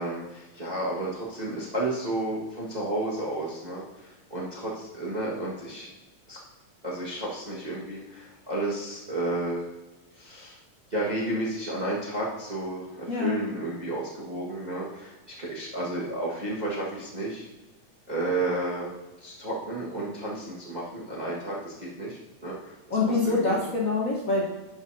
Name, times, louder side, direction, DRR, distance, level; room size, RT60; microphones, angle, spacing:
voice 1, 0.0-5.9 6.3-6.4 6.8-9.7 10.1-10.6 10.9-17.5 18.1-18.9 19.2-23.6, right 2 dB, 30° right, -6 dB, 0.7 m, -32 dB
voice 2, 13.1-13.4 22.9-24.4, left 3 dB, 90° left, -4 dB, 0.7 m, -25 dB
11.5 x 7.2 x 2.7 m, 1.1 s
omnidirectional pair, 3.4 m